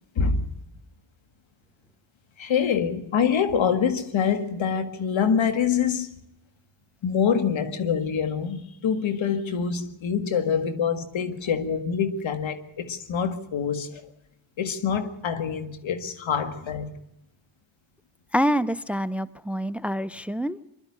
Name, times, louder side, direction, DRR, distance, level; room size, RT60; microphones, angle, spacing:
voice 1, 2.4-6.2 7.0-14.0 14.6-16.9, left 7 dB, 80° left, 1.9 m, -25 dB
voice 2, 18.3-20.6, equal, 5° right, 0.6 m, -26 dB
22.5 x 12.0 x 9.7 m
cardioid pair, 70°, 46 cm